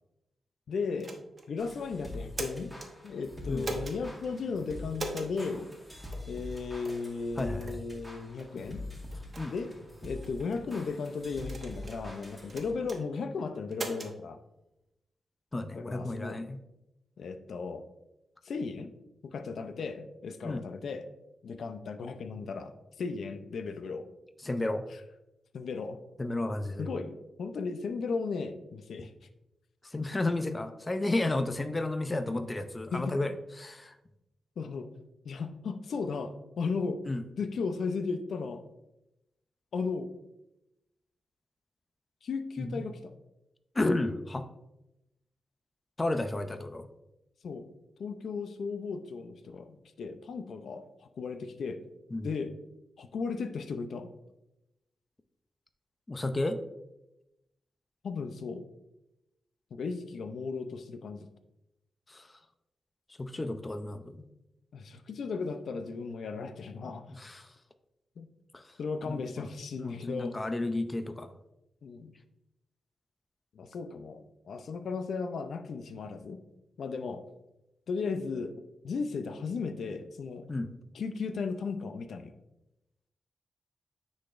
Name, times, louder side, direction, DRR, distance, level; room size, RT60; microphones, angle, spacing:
voice 1, 0.7-1.2 1.5-2.7 3.0-5.7 6.3-8.8 9.5-9.7 10.0-14.4 15.7-16.4 17.2-17.8 18.4-18.9 19.3-21.0 21.4-22.7 23.0-24.1 25.5-26.0 26.8-29.1 32.9-33.2 34.6-34.9 35.2-37.0 37.4-38.6 39.7-40.1 42.2-43.1 47.4-47.7 48.0-50.9 51.2-51.8 52.2-52.5 53.0-54.1 58.0-58.6 59.7-61.3 64.7-67.1 68.2-68.3 68.8-70.4 71.8-72.1 73.5-76.4 76.8-77.2 77.9-78.5 78.8-80.5 80.9-82.3, left 4 dB, 75° left, 9 dB, 0.5 m, -35 dB
sound 1, 1.0-1.5 2.1-2.9 3.6-4.0 4.9-5.3 6.1-6.3 6.8-7.1 7.6-7.8 8.4-8.5 9.1-9.4 10.2-10.6 11.4-12.0 12.5-13.0 13.7-14.1, right 2 dB, 45° right, 1.0 m, -39 dB
sound 2, 1.6-12.9, left 1 dB, ahead, 1.7 m, -44 dB
voice 2, 7.4-7.7 9.4-9.5 15.5-16.6 20.4-20.6 24.4-24.8 26.2-26.9 29.8-34.0 37.1-37.2 42.6-42.8 43.7-44.5 46.0-46.9 52.1-52.3 56.1-56.6 62.1-62.3 63.2-64.2 67.1-67.5 68.5-68.6 69.1-69.5 69.8-71.3 80.5-80.7, left 2 dB, 25° left, 9 dB, 0.5 m, -32 dB
9.5 x 4.1 x 2.5 m, 0.91 s
cardioid pair, 80°, 0 cm